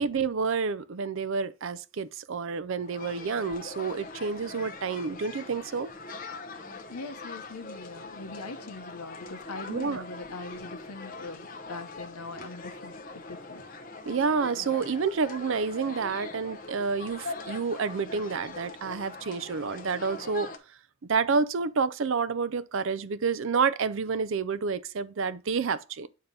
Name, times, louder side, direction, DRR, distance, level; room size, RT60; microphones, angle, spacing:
voice 1, 0.0-5.9 9.7-10.1 14.1-20.5 21.1-26.1, right 5 dB, 60° right, 0.5 m, -29 dB
sound 1, 2.8-20.6, left 3 dB, 40° left, 0.8 m, -42 dB
voice 2, 6.9-13.6, left 3 dB, 90° left, 0.9 m, -42 dB
8.7 x 2.9 x 5.2 m
head